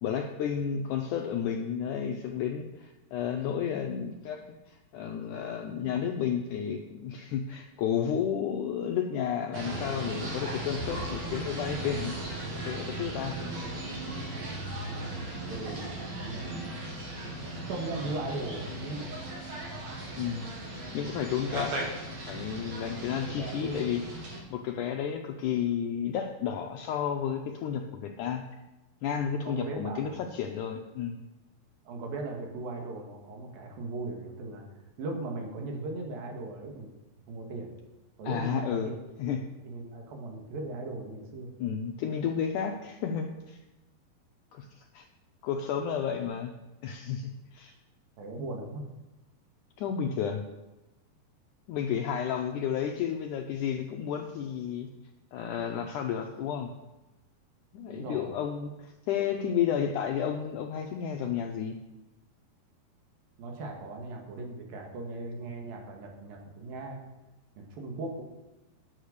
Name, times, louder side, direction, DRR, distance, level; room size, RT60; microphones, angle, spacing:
voice 1, 0.0-12.1 12.7-13.4 20.2-20.5 20.9-21.8 22.3-24.0 24.5-28.4 29.0-31.2 38.2-38.9 39.2-39.4 41.6-43.6 44.5-45.1 45.4-46.5 46.8-47.7 49.8-50.4 51.7-54.9 55.3-56.7 57.7-61.8, left 8 dB, 80° left, 4 dB, 1.8 m, -32 dB
sound 1, 9.5-24.4, right 1 dB, 55° right, 2.9 m, -37 dB
voice 2, 15.5-15.9 16.2-17.1 17.7-19.2 23.2-23.9 29.5-30.2 31.9-34.6 35.0-36.9 37.3-37.7 38.2-39.0 39.6-41.5 48.2-48.9 57.9-58.3 63.4-67.0 67.6-68.2, right 2 dB, 75° right, 2 dB, 3.3 m, -38 dB
10.0 x 7.4 x 6.5 m, 1.0 s
omnidirectional pair, 4.3 m